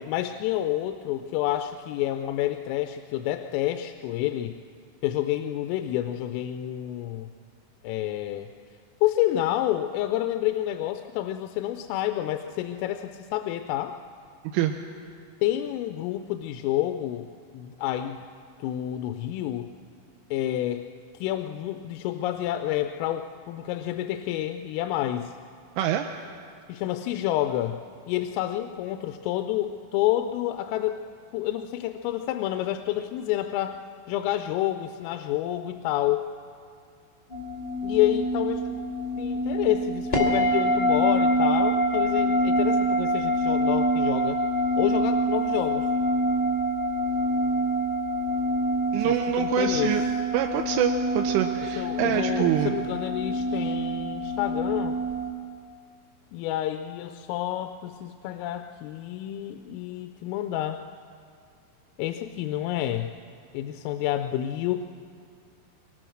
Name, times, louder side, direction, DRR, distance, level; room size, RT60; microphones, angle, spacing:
voice 1, 0.0-4.6 5.0-7.3 7.8-8.5 9.0-14.0 15.4-18.2 18.6-19.7 20.3-20.8 21.2-25.3 26.7-31.0 31.3-33.8 34.1-36.3 37.8-38.8 39.2-44.4 44.8-45.9 48.9-49.9 51.8-55.0 56.3-60.8 62.0-63.1 63.5-64.8, left 13 dB, 90° left, 7 dB, 3.3 m, -29 dB
voice 2, 25.8-26.1 48.9-50.0 50.3-52.8, right 11 dB, 80° right, 4 dB, 3.2 m, -25 dB
sound 1, 37.3-55.3, equal, 30° left, 1.1 m, -26 dB
25.0 x 22.0 x 6.4 m, 2.3 s
omnidirectional pair, 5.8 m